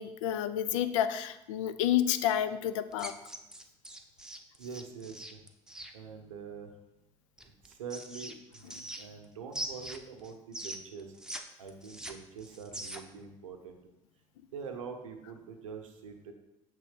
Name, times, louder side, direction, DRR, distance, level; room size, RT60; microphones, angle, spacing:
voice 1, 0.0-3.1, left 10 dB, 75° left, 12 dB, 0.4 m, -30 dB
sound 1, 2.9-5.9 7.4-9.2 9.5-11.4 11.7-13.2, right 1 dB, 5° right, 0.7 m, -42 dB
voice 2, 4.6-5.4 5.9-6.8 7.4-11.1 11.6-13.8 14.5-16.3, right 5 dB, 85° right, 4 dB, 0.8 m, -44 dB
6.2 x 3.7 x 5.1 m, 0.92 s
hypercardioid pair, 60°, 16 cm